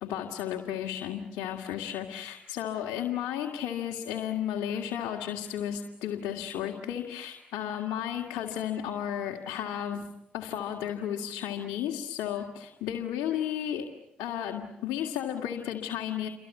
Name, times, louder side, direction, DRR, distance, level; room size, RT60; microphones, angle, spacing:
voice 1, 0.0-10.1 10.3-13.9 14.2-16.3, left 10 dB, 85° left, 1 dB, 2.1 m, -33 dB
29.5 x 23.5 x 8.4 m, 0.81 s
supercardioid pair, 50°, 4 cm